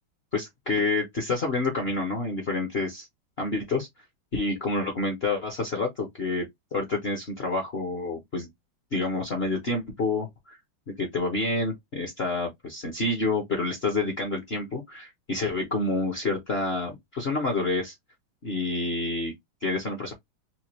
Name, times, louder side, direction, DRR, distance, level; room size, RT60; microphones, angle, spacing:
voice 1, 0.3-3.1 3.4-3.9 4.3-6.5 6.7-8.5 8.9-10.6 10.9-17.9 18.4-19.3 19.6-20.1, left 3 dB, 45° left, 0.8 m, -28 dB
4.3 x 2.4 x 3.0 m
omnidirectional pair, 2.2 m